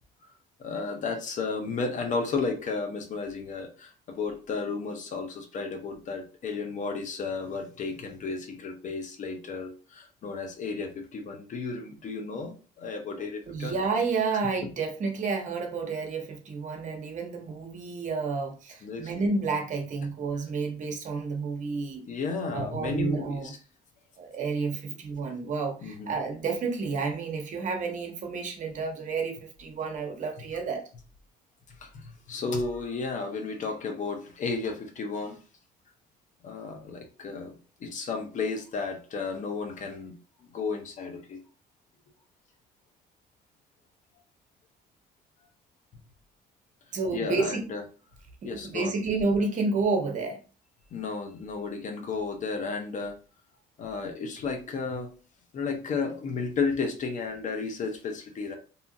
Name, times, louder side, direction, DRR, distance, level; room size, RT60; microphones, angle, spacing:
voice 1, 0.6-13.8 14.3-14.4 18.8-19.1 21.8-23.6 25.8-26.1 31.8-35.4 36.4-40.2 40.5-41.4 47.1-47.8 48.4-48.9 50.9-53.1 53.8-55.1 55.5-58.5, left 4 dB, 50° left, 5 dB, 0.6 m, -33 dB
voice 2, 13.2-22.0 22.5-23.5 24.2-30.8 46.9-47.6 48.4-50.4, right 4 dB, 45° right, 3 dB, 0.8 m, -30 dB
2.7 x 2.4 x 2.6 m, 0.36 s
cardioid pair, 110°, 17 cm